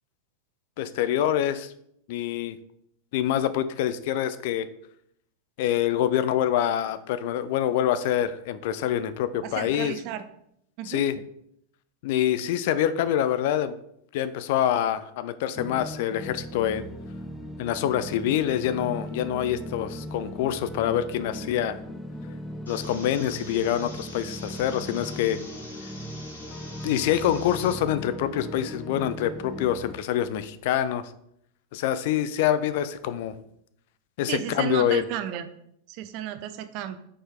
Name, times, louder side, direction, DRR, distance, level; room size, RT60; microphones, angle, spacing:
voice 1, 0.8-1.7 2.1-2.6 3.1-4.7 5.6-10.0 10.8-11.2 12.0-13.7 14.1-16.9 17.6-21.8 22.7-25.4 26.8-31.1 31.7-33.4 34.2-35.0, left 11 dB, 50° left, 13 dB, 0.4 m, -26 dB
voice 2, 9.5-10.2 10.8-11.0 34.3-35.5 35.9-37.0, right 11 dB, 45° right, 10 dB, 0.5 m, -33 dB
sound 1, 15.5-29.9, equal, 10° left, 0.6 m, -38 dB
sound 2, 22.7-27.7, left 2 dB, 70° left, 1.4 m, -45 dB
4.9 x 4.6 x 4.3 m, 0.74 s
figure-of-eight pair, 90°, 0 cm